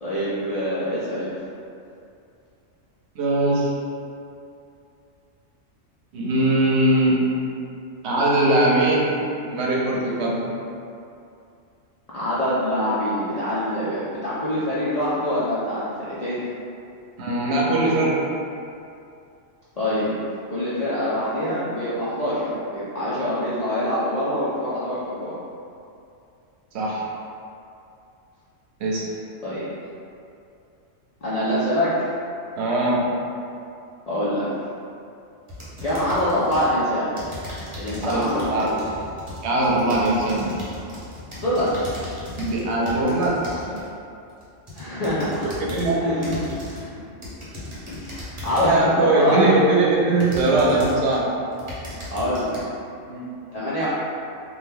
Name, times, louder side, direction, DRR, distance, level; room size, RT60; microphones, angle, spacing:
voice 1, 0.0-1.3 12.1-16.4 19.8-20.1 20.5-25.3 29.4-29.7 31.2-32.1 34.1-34.5 35.8-37.1 37.8-38.7 41.4-41.7 44.7-45.5 46.0-47.0 47.9-49.6 52.1-52.6 53.5-53.9, left 1 dB, 55° left, -11 dB, 0.4 m, -25 dB
voice 2, 3.2-3.7 6.1-7.2 8.0-9.1 9.5-10.4 17.2-18.2 26.7-27.0 28.8-29.0 32.6-33.1 38.0-38.7 39.4-40.6 42.4-43.4 43.7-43.8 45.6-46.1 48.6-51.3 53.1-53.3, right 2 dB, 65° right, -4 dB, 0.8 m, -21 dB
sound 1, 35.5-36.7 37.2-43.9 44.4-45.9 46.2-46.9 47.2-48.9 49.5-49.6 50.2-51.2 51.5-52.6, left 1 dB, 30° right, 0.7 m, -37 dB
2.9 x 2.2 x 3.5 m, 2.6 s
omnidirectional pair, 1.3 m